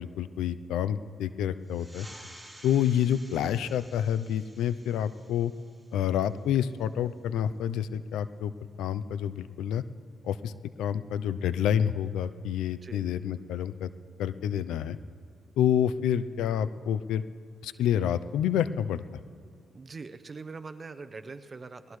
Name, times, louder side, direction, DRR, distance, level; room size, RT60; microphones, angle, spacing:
voice 1, 0.0-2.1 2.6-5.5 5.9-8.5 8.8-9.8 10.2-10.5 10.8-13.9 14.2-15.0 15.6-17.2 17.6-19.0, left 9 dB, 90° left, 14 dB, 0.5 m, -28 dB
sound 1, 1.6-6.8, equal, ahead, 3.6 m, -52 dB
voice 2, 19.7-22.0, right 4 dB, 35° right, 9 dB, 0.8 m, -42 dB
20.5 x 18.5 x 3.2 m, 2.3 s
cardioid pair, 80°, 0 cm